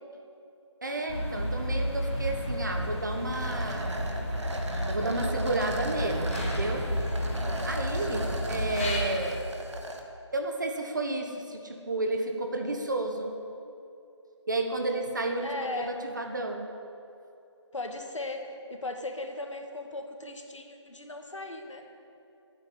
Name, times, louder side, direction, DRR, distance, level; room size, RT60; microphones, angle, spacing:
voice 1, 0.8-4.0 4.9-6.8 7.6-9.4 10.3-13.3 14.5-15.5 15.8-16.7, right 2 dB, 40° right, 3 dB, 1.4 m, -31 dB
sound 1, 1.1-9.0, equal, 25° left, 2.4 m, -31 dB
sound 2, 3.3-10.0, right 1 dB, 70° right, 2.0 m, -38 dB
voice 2, 8.1-8.4 15.4-16.0 17.7-21.8, left 2 dB, 80° left, 3 dB, 2.1 m, -37 dB
13.0 x 9.0 x 9.2 m, 2.7 s
figure-of-eight pair, 175°, 15 cm